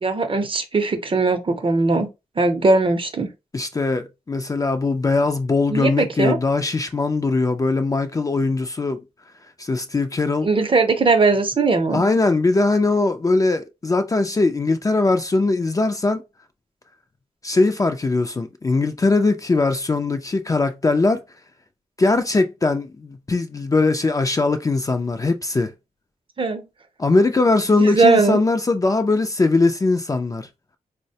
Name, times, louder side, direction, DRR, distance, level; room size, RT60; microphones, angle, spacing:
voice 1, 0.0-2.1 2.4-3.3 5.7-6.4 10.4-12.0 26.4-26.6 27.8-28.4, right 3 dB, 40° right, 0.6 m, -19 dB
voice 2, 3.5-9.0 9.6-10.5 11.9-16.2 17.4-21.2 22.0-25.7 27.0-30.5, left 3 dB, 25° left, 0.3 m, -20 dB
3.9 x 2.1 x 2.7 m
wide cardioid pair, 95°, 14 cm